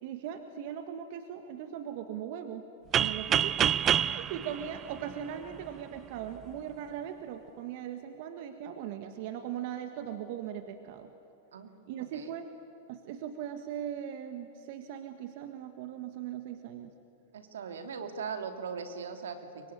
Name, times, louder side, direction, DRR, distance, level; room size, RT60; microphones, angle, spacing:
voice 1, 0.0-2.6 3.0-11.1 11.9-12.5 12.9-16.9, right 9 dB, 55° right, 7 dB, 1.7 m, -39 dB
sound 1, 2.9-5.7, right 9 dB, 30° right, 0.5 m, -28 dB
voice 2, 17.3-19.7, right 6 dB, 80° right, 7 dB, 2.5 m, -39 dB
24.0 x 23.0 x 10.0 m, 2.5 s
hypercardioid pair, 115°, 0 cm